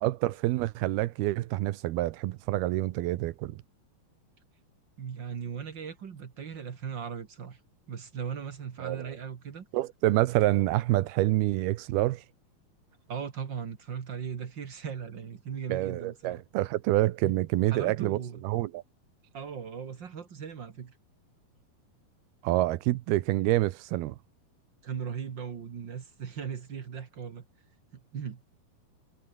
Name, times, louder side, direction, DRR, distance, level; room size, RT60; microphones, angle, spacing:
voice 1, 0.0-3.6 8.8-9.0 9.7-12.2 15.7-18.8 22.4-24.2, right 17 dB, 80° right, 2.8 m, -27 dB
voice 2, 5.0-7.6 7.9-9.7 13.1-16.4 17.2-17.4 17.7-18.4 19.3-21.0 24.8-27.4 27.9-28.4, right 7 dB, 50° right, 1.3 m, -38 dB
omnidirectional pair, 4.5 m